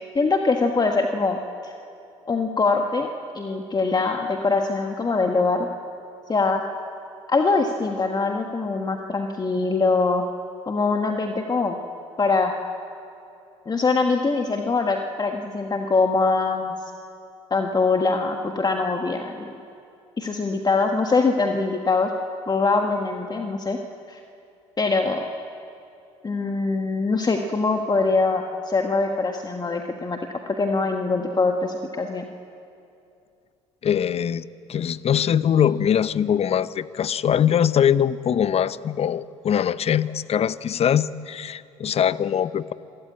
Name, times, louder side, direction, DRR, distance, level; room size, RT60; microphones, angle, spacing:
voice 1, 0.1-1.4 1.6-1.7 2.3-3.1 3.3-5.7 6.3-6.6 7.3-10.2 10.7-11.8 12.2-12.5 13.7-16.7 17.5-19.5 20.2-22.1 22.5-23.8 24.1-24.2 24.8-25.2 26.2-30.2 30.5-32.3, left 3 dB, 25° left, 4 dB, 1.5 m, -23 dB
voice 2, 33.8-42.7, left 9 dB, 40° left, 17 dB, 0.7 m, -22 dB
27.5 x 13.5 x 8.7 m, 2.7 s
hypercardioid pair, 60°, 16 cm